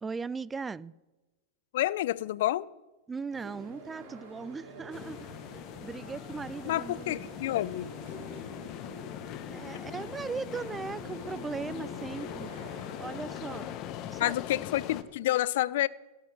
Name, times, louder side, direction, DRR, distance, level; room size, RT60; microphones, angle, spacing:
voice 1, 0.0-0.9 3.1-5.3 5.8-7.4 9.5-12.5 13.0-13.7 14.1-14.6, right 4 dB, 15° right, 0.3 m, -38 dB
voice 2, 1.7-2.7 6.7-7.9 14.2-15.9, left 14 dB, 65° left, 0.5 m, -29 dB
sound 1, 3.3-13.8, right 3 dB, 60° right, 4.6 m, -48 dB
sound 2, 4.9-15.0, left 11 dB, 45° left, 1.0 m, -41 dB
17.5 x 6.7 x 6.0 m
hypercardioid pair, 100°, 0 cm